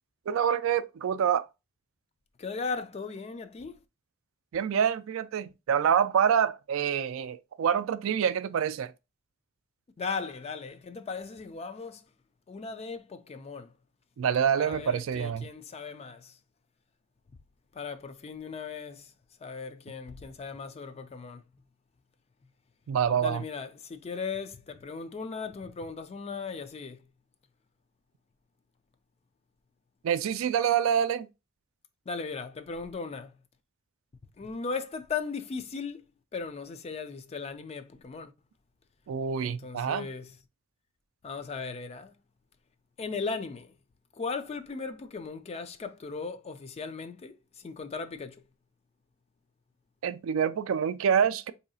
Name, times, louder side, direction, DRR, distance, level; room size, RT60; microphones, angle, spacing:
voice 1, 0.3-1.5 4.5-8.9 14.2-15.5 22.9-23.4 30.0-31.3 39.1-40.1 50.0-51.5, right 8 dB, 65° right, 0.3 m, -26 dB
voice 2, 2.4-3.8 10.0-12.0 12.5-13.7 14.6-16.4 17.7-19.1 19.4-21.4 23.2-27.0 32.1-33.3 34.4-36.0 36.3-38.3 39.4-40.3 41.2-42.1 43.0-43.7 44.2-48.4, left 4 dB, 30° left, 0.3 m, -37 dB
3.9 x 2.7 x 2.6 m
head